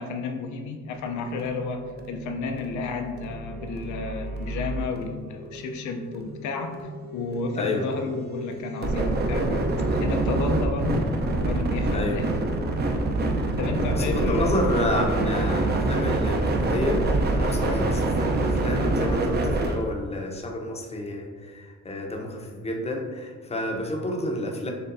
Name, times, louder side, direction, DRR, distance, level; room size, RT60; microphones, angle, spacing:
voice 1, 0.0-9.7 9.9-11.1 11.4-12.3 13.6-14.7 15.1-15.3, left 4 dB, 70° left, 5 dB, 0.5 m, -32 dB
sound 1, 0.9-19.8, right 2 dB, 35° right, 0.5 m, -27 dB
voice 2, 7.6-7.9 11.9-12.2 13.9-24.7, left 1 dB, 20° left, 1 dB, 0.6 m, -29 dB
6.5 x 2.2 x 2.5 m, 1.5 s
cardioid pair, 90°, 30 cm